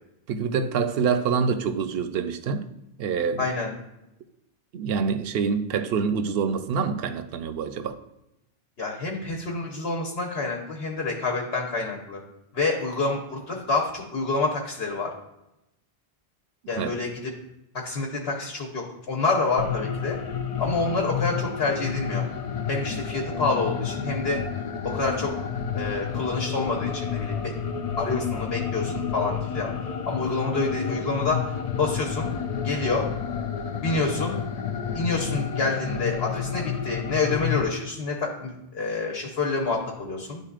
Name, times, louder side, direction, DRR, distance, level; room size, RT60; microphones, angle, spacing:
voice 1, 0.3-2.7 3.0-3.5 4.7-8.0 16.8-16.9, right 6 dB, 75° right, 0.8 m, -26 dB
voice 2, 3.4-3.7 8.8-12.2 12.5-15.1 16.7-17.3 17.7-20.2 20.6-22.2 22.7-24.4 24.8-25.3 25.7-27.5 28.0-29.7 30.1-31.4 31.8-32.3 32.6-33.0 33.8-34.4 34.9-40.4, left 3 dB, 80° left, 1.3 m, -27 dB
sound 1, 19.6-37.6, left 7 dB, 50° left, 0.5 m, -30 dB
12.0 x 4.0 x 2.4 m
omnidirectional pair, 1.0 m